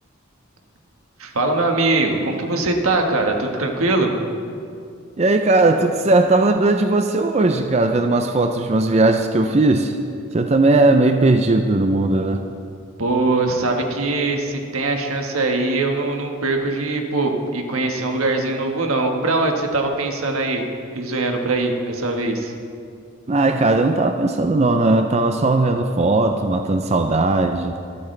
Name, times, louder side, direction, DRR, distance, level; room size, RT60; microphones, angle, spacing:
voice 1, 1.2-4.1 13.0-20.6 20.9-22.5, right 2 dB, 90° right, 3 dB, 1.5 m, -22 dB
voice 2, 5.2-10.0 10.3-12.5 23.3-27.8, right 2 dB, 30° right, 6 dB, 0.4 m, -18 dB
25.0 x 8.5 x 3.3 m, 2.3 s
head